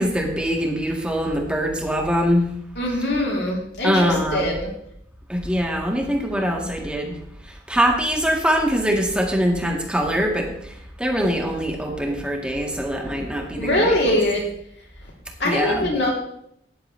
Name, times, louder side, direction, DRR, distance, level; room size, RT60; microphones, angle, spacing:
voice 1, 0.0-2.5 3.8-4.5 5.3-7.2 7.7-10.5 11.0-14.0 15.4-15.9, equal, 5° right, 0 dB, 1.9 m, -23 dB
voice 2, 2.8-4.7 13.6-14.4 15.4-16.1, left 1 dB, 75° left, -2 dB, 3.4 m, -22 dB
13.5 x 10.0 x 3.3 m, 0.74 s
head